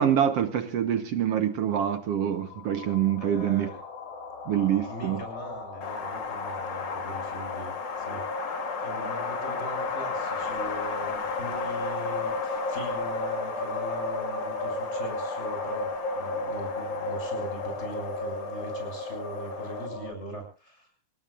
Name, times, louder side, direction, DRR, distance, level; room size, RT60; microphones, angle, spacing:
voice 1, 0.0-3.7 4.5-5.2, right 9 dB, 60° right, 9 dB, 2.0 m, -25 dB
sound 1, 2.3-20.1, left 2 dB, 75° left, 4.5 m, -35 dB
voice 2, 3.2-3.8 4.9-8.5 8.8-20.9, right 1 dB, 20° left, 4 dB, 7.3 m, -41 dB
Wind, 5.8-19.9, left 5 dB, 40° left, 2.2 m, -35 dB
27.0 x 19.0 x 2.5 m, 0.37 s
omnidirectional pair, 3.4 m